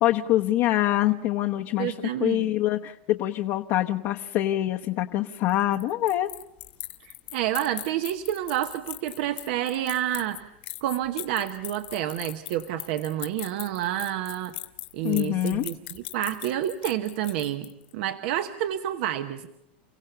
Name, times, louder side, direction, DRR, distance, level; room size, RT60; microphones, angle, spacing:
voice 1, 0.0-1.9 2.2-6.3 15.0-15.7, left 14 dB, 50° left, 3 dB, 1.0 m, -25 dB
voice 2, 1.8-2.5 7.0-10.5 10.8-14.6 14.9-19.5, right 12 dB, 65° right, 9 dB, 1.0 m, -29 dB
sound 1, 5.3-17.9, left 17 dB, 75° left, 2.0 m, -39 dB
30.0 x 16.5 x 6.8 m, 0.93 s
supercardioid pair, 125°, 6 cm